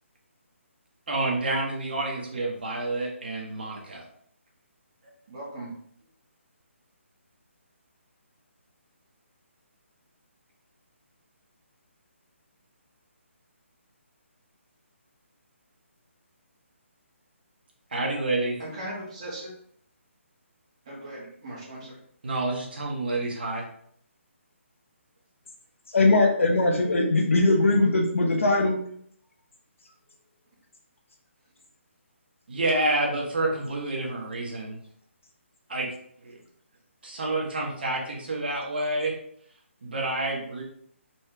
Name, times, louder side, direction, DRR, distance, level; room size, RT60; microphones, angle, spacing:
voice 1, 1.1-4.0 17.9-18.6 22.2-23.6 32.5-34.8 35.7-35.9 36.2-36.4 37.0-39.1 39.8-40.6, right 2 dB, 45° right, -2 dB, 1.3 m, -28 dB
voice 2, 5.3-5.7 18.6-19.5 20.8-22.0, right 1 dB, 25° right, -6 dB, 1.6 m, -38 dB
voice 3, 25.9-28.8, left 2 dB, 70° left, 2 dB, 1.1 m, -20 dB
4.3 x 3.5 x 3.3 m, 0.65 s
hypercardioid pair, 175°, 7 cm